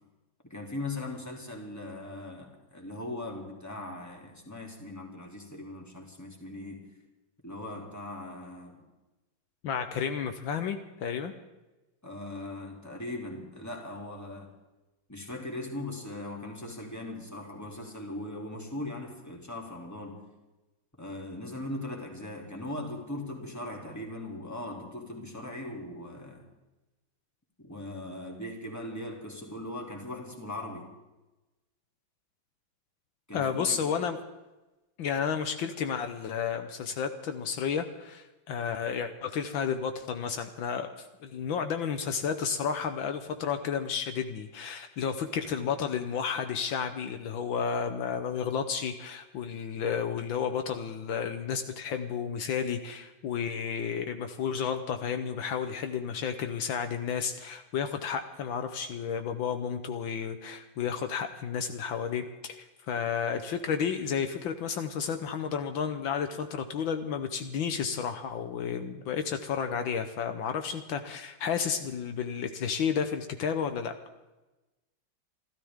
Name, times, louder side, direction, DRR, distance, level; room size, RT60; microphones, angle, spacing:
voice 1, 0.5-6.9 7.4-8.8 12.0-14.5 15.1-20.2 21.0-26.5 27.6-30.9 33.3-33.9, left 1 dB, 10° left, 0 dB, 2.8 m, -39 dB
voice 2, 9.6-11.3 33.3-34.2 35.0-73.9, left 7 dB, 75° left, 7 dB, 1.7 m, -32 dB
28.0 x 13.5 x 3.7 m, 1.1 s
omnidirectional pair, 2.2 m